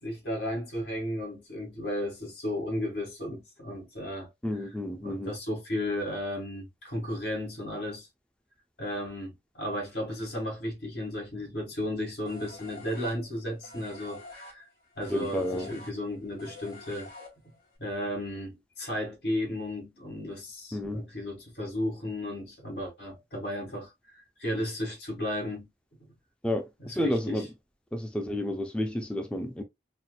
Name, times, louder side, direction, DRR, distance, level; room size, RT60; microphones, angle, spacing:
voice 1, 0.0-4.3 5.0-8.1 8.8-14.6 14.9-17.1 17.4-17.5 17.8-25.7 26.0-26.1 26.8-27.4, left 1 dB, 80° left, 1.8 m, -34 dB
voice 2, 4.4-5.3 15.1-15.7 20.7-21.0 26.4-27.5 27.9-29.6, left 1 dB, 5° left, 0.3 m, -31 dB
sound 1, 12.2-17.7, left 2 dB, 55° left, 1.9 m, -47 dB
4.2 x 2.1 x 2.3 m
head